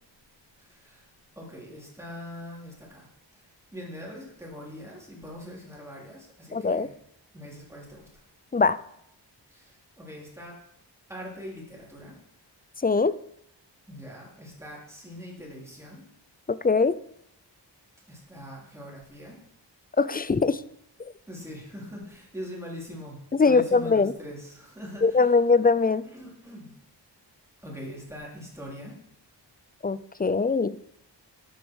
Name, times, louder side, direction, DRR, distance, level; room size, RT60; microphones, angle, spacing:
voice 1, 0.6-1.1 1.4-6.9 7.3-8.2 9.5-10.6 11.1-12.2 13.9-16.1 18.1-19.4 21.3-25.4 26.0-26.8 27.6-29.0, equal, 5° right, -4 dB, 3.6 m, -42 dB
voice 2, 6.5-6.9 8.5-8.8 12.8-13.1 16.5-17.0 20.0-20.6 23.4-24.1 25.0-26.0 29.8-30.8, left 4 dB, 25° left, 17 dB, 0.3 m, -22 dB
11.5 x 8.3 x 4.8 m, 0.76 s
wide cardioid pair, 115°, 43 cm